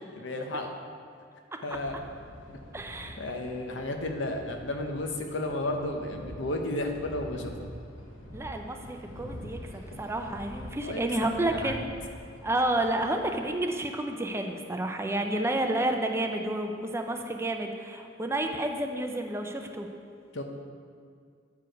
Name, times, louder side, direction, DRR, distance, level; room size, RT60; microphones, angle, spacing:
voice 1, 0.1-0.7 1.6-1.9 3.2-7.7 10.8-11.7 20.3-20.4, left 1 dB, 70° left, 4 dB, 0.8 m, -33 dB
sound 1, 1.7-13.5, equal, 85° left, 1.1 m, -46 dB
voice 2, 2.7-3.2 8.3-11.9 12.4-19.9, right 1 dB, 15° right, 4 dB, 0.4 m, -30 dB
8.2 x 4.8 x 5.1 m, 2.1 s
head